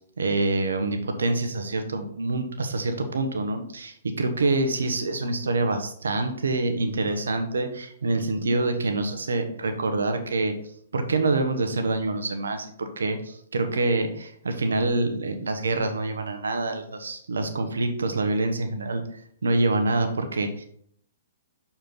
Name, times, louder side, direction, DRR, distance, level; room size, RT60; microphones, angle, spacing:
voice 1, 0.2-10.5 10.9-19.0 19.4-20.6, right 2 dB, 85° right, 6 dB, 1.1 m, -26 dB
6.8 x 4.4 x 3.8 m, 0.64 s
hypercardioid pair, 130°, 0 cm